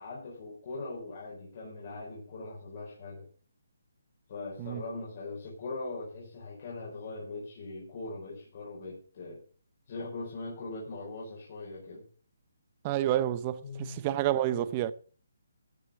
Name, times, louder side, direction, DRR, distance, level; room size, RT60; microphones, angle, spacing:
voice 1, 0.0-3.3 4.3-9.4 9.9-12.0 13.6-14.1 14.5-14.7, left 3 dB, 35° left, 4.7 m, -41 dB
voice 2, 12.8-14.9, right 12 dB, 20° right, 0.7 m, -29 dB
14.0 x 6.8 x 6.9 m
hypercardioid pair, 170°, 0 cm